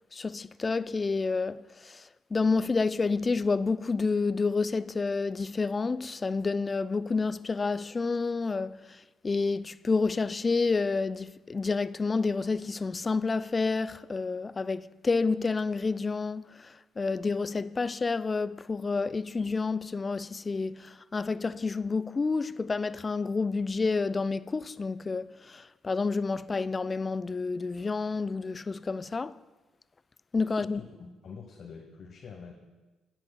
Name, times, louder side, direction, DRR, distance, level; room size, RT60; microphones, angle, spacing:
voice 1, 0.1-2.0 2.3-29.4 30.3-30.8, left 4 dB, 30° left, 0.3 m, -29 dB
voice 2, 30.5-32.5, left 5 dB, 50° left, 1.1 m, -46 dB
17.5 x 7.9 x 2.3 m
figure-of-eight pair, 45°, 0 cm